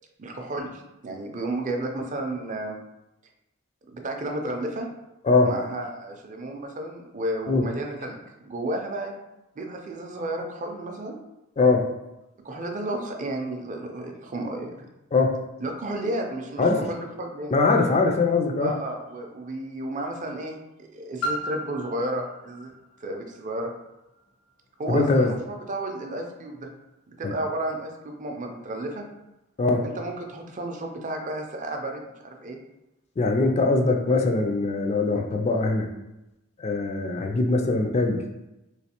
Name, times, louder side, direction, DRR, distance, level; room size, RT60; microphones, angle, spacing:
voice 1, 0.2-2.8 3.9-4.9 5.4-9.1 9.6-11.2 12.4-14.9 15.6-17.5 18.6-22.7 23.0-23.7 24.8-26.7 27.2-29.1 29.8-32.6, right 1 dB, 35° right, 3 dB, 0.5 m, -32 dB
voice 2, 11.6-11.9 15.1-15.4 16.6-16.9 17.5-18.7 24.9-25.3 27.2-27.3 29.6-29.9 33.2-35.9 36.6-38.2, left 3 dB, 30° left, 3 dB, 0.3 m, -22 dB
Piano, 21.2-26.6 27.4-27.5, equal, 75° left, 0.9 m, -37 dB
3.1 x 3.1 x 2.9 m, 0.95 s
head